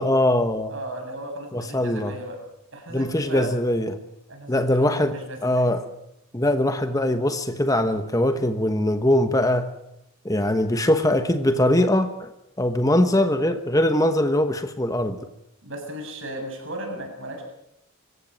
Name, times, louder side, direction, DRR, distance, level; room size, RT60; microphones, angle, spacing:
voice 1, 0.0-0.7 1.5-2.1 2.9-4.0 4.5-5.2 5.4-5.8 6.3-9.7 10.2-12.3 12.6-15.2, left 1 dB, 15° left, 9 dB, 1.1 m, -21 dB
voice 2, 0.7-2.4 2.7-3.5 4.3-5.7 15.6-17.4, right 1 dB, 60° right, 2 dB, 7.7 m, -36 dB
26.0 x 15.0 x 9.0 m, 0.83 s
head